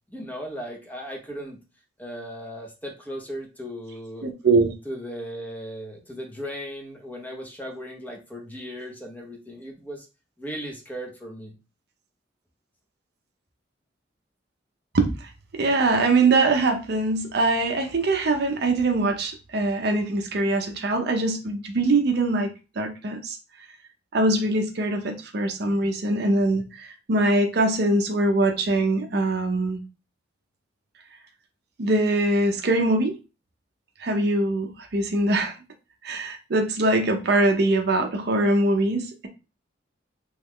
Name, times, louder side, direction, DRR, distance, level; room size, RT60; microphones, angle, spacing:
voice 1, 0.1-1.6 2.0-4.3 4.8-10.1 10.4-11.5, equal, 10° left, 0 dB, 0.6 m, -37 dB
voice 2, 4.2-4.7 14.9-15.1 15.5-22.5 22.8-23.4 24.1-29.8 31.8-33.2 34.0-35.6 36.0-39.3, right 2 dB, 55° right, 5 dB, 0.5 m, -22 dB
3.0 x 2.2 x 3.5 m, 0.31 s
head